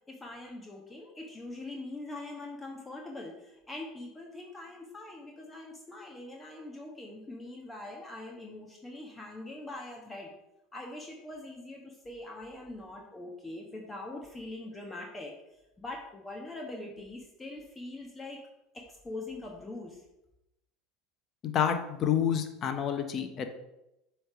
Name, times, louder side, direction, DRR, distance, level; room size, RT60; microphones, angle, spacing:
voice 1, 0.1-10.3 10.7-15.3 15.8-18.4 18.7-20.0, left 2 dB, 20° left, 0 dB, 1.3 m, -43 dB
voice 2, 21.4-23.5, left 8 dB, 45° left, 8 dB, 0.9 m, -29 dB
7.7 x 3.4 x 6.1 m, 0.91 s
hypercardioid pair, 80°, 0 cm